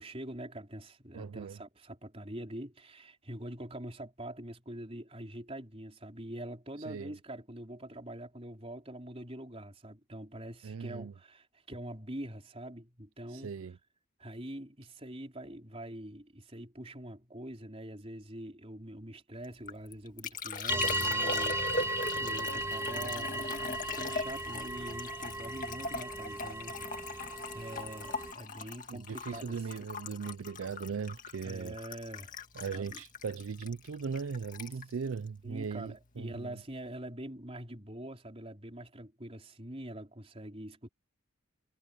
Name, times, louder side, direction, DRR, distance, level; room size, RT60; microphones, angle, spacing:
voice 1, 0.0-13.5 14.2-26.8 27.1-29.6 31.4-33.0 35.4-40.9, right 1 dB, 25° right, 4.4 m, -44 dB
voice 2, 1.1-1.6 6.8-7.1 10.6-11.1 13.3-13.8 28.9-31.8 32.5-36.6, right 5 dB, 75° right, 0.4 m, -38 dB
Liquid, 19.4-36.1 36.3-36.9, left 3 dB, 40° left, 2.0 m, -40 dB
sound 1, 20.7-28.3, right 1 dB, 10° right, 0.6 m, -36 dB
head